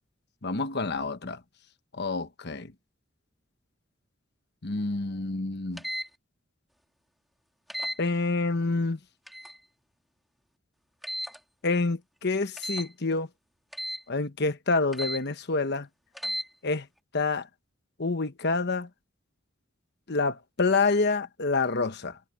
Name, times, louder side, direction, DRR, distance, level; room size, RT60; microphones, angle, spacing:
voice 1, 0.4-1.4 1.9-2.7 4.6-5.8 8.0-9.0 11.6-13.3 14.1-15.9 16.6-16.9 17.1-17.5 18.0-18.9 20.1-22.2, left 3 dB, 55° left, 1.2 m, -27 dB
sound 1, 5.8-6.1 7.7-8.0 9.3-9.6 11.0-11.4 12.6-12.9 13.7-14.0 14.9-15.2 16.1-16.5, equal, ahead, 2.2 m, -34 dB
head